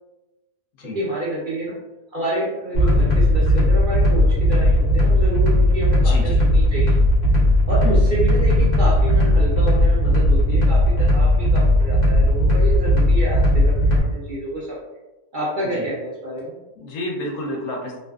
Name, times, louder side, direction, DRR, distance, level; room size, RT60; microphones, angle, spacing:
voice 1, 0.9-1.7 2.1-7.0 7.7-14.8 15.3-16.6, right 1 dB, 70° right, -7 dB, 0.4 m, -28 dB
sound 1, 2.7-14.0, left 1 dB, 55° left, 0.4 m, -17 dB
voice 2, 5.9-6.4 7.8-8.0 15.7-15.9 16.8-18.0, left 1 dB, 70° left, 0 dB, 0.9 m, -30 dB
2.4 x 2.3 x 2.3 m, 1.1 s
omnidirectional pair, 1.5 m